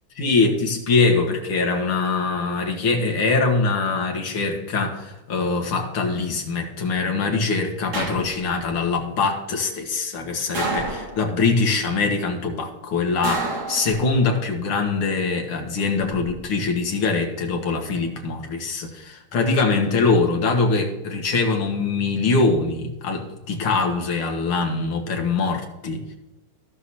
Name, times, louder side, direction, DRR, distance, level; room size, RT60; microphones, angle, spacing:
voice 1, 0.2-26.0, left 4 dB, 80° left, 3 dB, 2.5 m, -23 dB
sound 1, 7.9-8.7 10.5-11.5 13.2-14.4 15.8-16.3, right 3 dB, 40° right, 1.8 m, -29 dB
16.5 x 6.2 x 2.8 m, 1.1 s
omnidirectional pair, 2.3 m